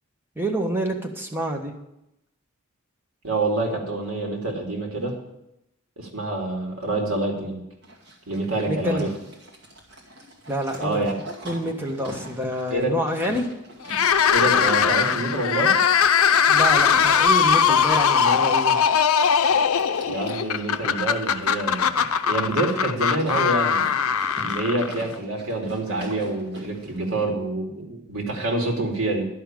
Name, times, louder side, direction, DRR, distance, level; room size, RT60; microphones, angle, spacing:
voice 1, 0.4-1.7 8.7-9.0 10.5-11.0 11.4-13.5 16.5-18.8, equal, 10° right, 1 dB, 1.3 m, -27 dB
voice 2, 3.2-5.2 6.0-7.6 8.3-9.1 10.8-11.1 12.7-12.9 14.3-15.7 20.1-23.8 24.4-29.3, right 2 dB, 70° right, 0 dB, 2.8 m, -26 dB
Livestock farm animals working animals, 7.8-27.1, right 1 dB, 50° right, 2.3 m, -43 dB
sound 1, 13.8-25.1, left 7 dB, 85° left, 0.5 m, -20 dB
11.5 x 5.7 x 8.9 m, 0.86 s
head